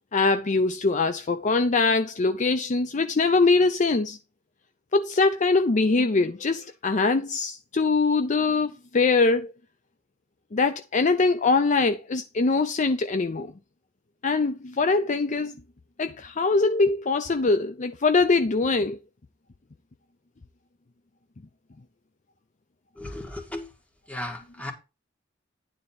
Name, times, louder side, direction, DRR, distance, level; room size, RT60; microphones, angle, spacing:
voice 1, 0.1-4.2 4.9-9.5 10.5-13.5 14.2-15.5 16.0-19.0, left 3 dB, 40° left, 0.5 m, -23 dB
voice 2, 23.0-23.7 24.1-24.7, left 1 dB, 5° left, 1.9 m, -35 dB
9.6 x 4.0 x 5.8 m
head